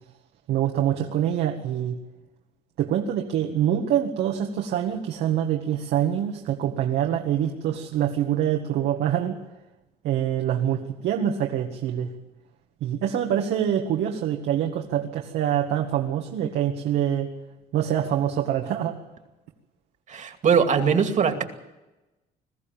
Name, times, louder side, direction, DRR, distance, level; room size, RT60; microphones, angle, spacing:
voice 1, 0.5-2.0 2.8-9.4 10.0-12.1 12.8-17.3 17.7-19.0, right 10 dB, 80° right, 2 dB, 2.0 m, -25 dB
voice 2, 20.1-21.4, right 6 dB, 45° right, 6 dB, 2.5 m, -21 dB
21.5 x 14.5 x 9.1 m, 1.0 s
cardioid pair, 110°, 17 cm